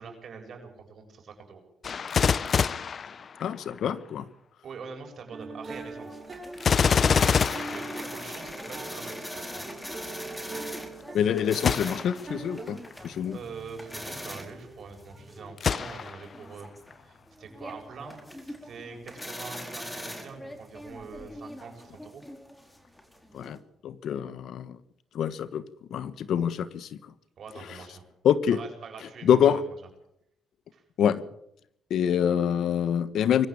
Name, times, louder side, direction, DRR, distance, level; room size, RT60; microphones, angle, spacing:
voice 1, 0.0-1.6 4.6-6.2 6.7-7.2 7.7-9.6 13.3-16.7 17.0-22.2 27.4-28.0 28.5-29.6 30.7-30.8, right 5 dB, 55° right, 4 dB, 7.6 m, -44 dB
Gunshot gunfire, 1.8-3.8 6.6-8.7 11.6-12.2 12.9-13.0 15.6-16.4 16.9-17.0, left 6 dB, 45° left, 0.7 m, -26 dB
voice 2, 3.4-4.2 11.1-12.8 13.0-13.4 23.3-23.6 23.8-24.8 25.1-25.6 25.9-27.1 28.2-28.6 29.2-29.6 31.0-31.2 31.9-33.5, left 9 dB, 70° left, 15 dB, 1.3 m, -25 dB
sound 1, 5.3-12.6, right 3 dB, 35° right, 7.9 m, -42 dB
sound 2, 5.7-23.6, equal, 10° left, 4.3 m, -42 dB
22.5 x 15.0 x 8.8 m, 0.77 s
cardioid pair, 90°, 0 cm